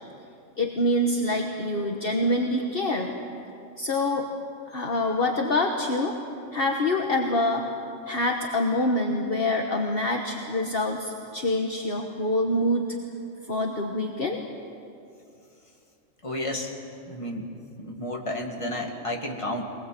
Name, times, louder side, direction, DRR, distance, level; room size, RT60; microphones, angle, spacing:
voice 1, 0.6-3.1 3.8-4.3 4.7-6.1 6.5-7.7 8.1-12.9 13.5-14.4, left 1 dB, 45° left, 2 dB, 1.4 m, -25 dB
voice 2, 16.2-16.7 17.1-17.5 17.8-19.6, left 1 dB, 25° left, 0 dB, 2.2 m, -31 dB
23.5 x 20.0 x 7.6 m, 2.6 s
omnidirectional pair, 1.3 m